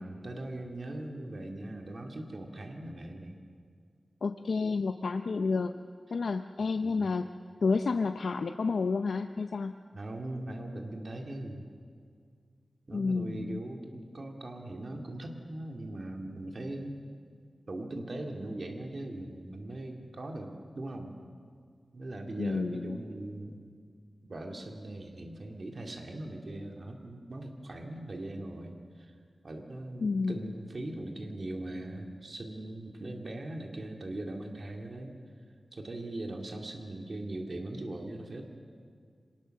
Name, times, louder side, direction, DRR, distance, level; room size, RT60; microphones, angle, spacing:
voice 1, 0.0-3.4 6.6-7.1 9.9-11.7 12.9-17.0 17.7-21.1 21.9-23.6 24.3-29.1 29.4-35.1 35.7-38.5, right 1 dB, 55° right, 3 dB, 2.4 m, -40 dB
voice 2, 4.2-5.7 6.1-7.3 7.6-9.7 12.9-13.6 22.4-23.0 30.0-30.5, left 4 dB, 85° left, 8 dB, 0.6 m, -30 dB
25.0 x 19.5 x 6.6 m, 2.1 s
wide cardioid pair, 100°, 0 cm